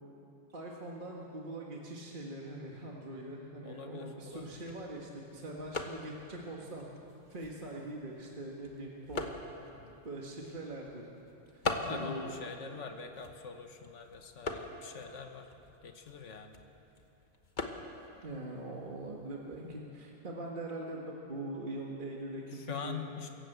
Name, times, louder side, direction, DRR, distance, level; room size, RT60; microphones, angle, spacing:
voice 1, 0.5-6.9 7.3-9.3 10.0-11.1 11.9-12.6 18.2-23.1, right 2 dB, 40° right, -2 dB, 1.9 m, -42 dB
voice 2, 3.6-4.6 9.7-10.0 11.7-15.5 15.8-16.6 19.6-19.9 22.5-23.3, left 6 dB, 70° left, 6 dB, 1.6 m, -44 dB
sound 1, 4.2-19.7, left 3 dB, 40° left, 1.4 m, -44 dB
25.5 x 14.5 x 8.0 m, 2.9 s
omnidirectional pair, 1.3 m